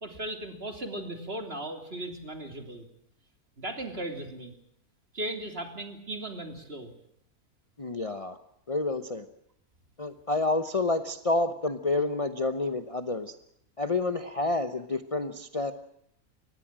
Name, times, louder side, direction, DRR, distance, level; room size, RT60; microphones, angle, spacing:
voice 1, 0.0-2.8 3.6-4.5 5.1-6.9, right 1 dB, 40° right, 6 dB, 3.3 m, -37 dB
voice 2, 7.8-8.4 8.7-9.3 10.0-13.3 13.8-15.7, left 2 dB, 25° left, 9 dB, 0.9 m, -29 dB
24.0 x 19.5 x 7.5 m, 0.74 s
omnidirectional pair, 1.6 m